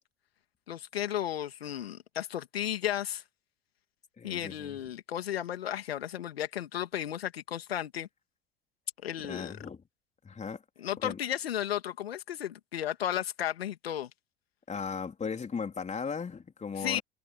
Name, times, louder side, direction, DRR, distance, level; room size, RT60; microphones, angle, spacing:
voice 1, 0.7-3.2 4.2-8.1 9.0-9.6 10.8-14.1 16.8-17.0, left 11 dB, 80° left, 2.6 m, -34 dB
voice 2, 4.2-4.8 9.2-9.8 10.2-10.6 11.0-11.2 14.7-17.0, left 5 dB, 25° left, 3.8 m, -37 dB
hypercardioid pair, 75°, 30 cm